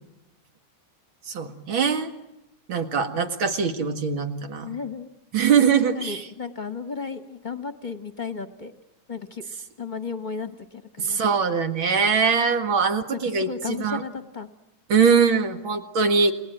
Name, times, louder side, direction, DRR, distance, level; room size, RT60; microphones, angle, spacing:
voice 1, 1.3-2.1 2.7-4.8 5.3-6.2 11.0-14.0 14.9-16.3, right 6 dB, 85° right, 7 dB, 2.6 m, -22 dB
voice 2, 4.6-5.1 5.7-8.7 9.1-9.5 9.8-11.2 13.1-14.5, left 5 dB, 30° left, 10 dB, 1.0 m, -34 dB
29.5 x 19.0 x 9.1 m, 0.93 s
omnidirectional pair, 2.2 m